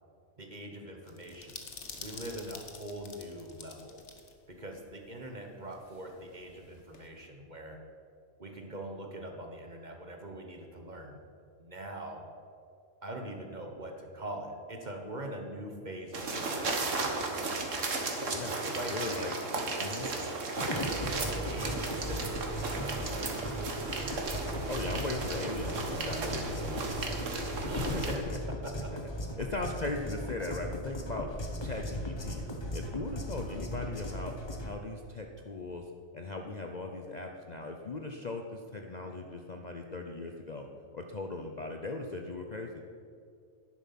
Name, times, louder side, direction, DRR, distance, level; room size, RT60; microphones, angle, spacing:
voice 1, 0.4-1.7 2.0-4.0 4.5-7.8 8.4-11.2 11.6-12.2 13.0-17.3 18.6-18.9 20.6-23.2 27.6-28.2 28.5-28.9, right 1 dB, 35° right, 3 dB, 1.3 m, -42 dB
sound 1, 1.1-4.3 4.6-4.7 5.7-7.1, left 5 dB, 60° left, 1.5 m, -48 dB
sound 2, 16.1-28.2, right 3 dB, 70° right, 1.8 m, -35 dB
voice 2, 18.3-19.3 19.8-20.1 24.7-26.8 27.7-28.4 29.4-31.3 31.6-32.4 32.7-34.3 34.6-35.8 36.1-40.7 40.9-42.8, left 3 dB, 40° left, 3 dB, 0.7 m, -38 dB
sound 3, 20.6-34.7, equal, 20° left, 1.1 m, -38 dB
11.0 x 11.0 x 5.9 m, 2.4 s
omnidirectional pair, 1.4 m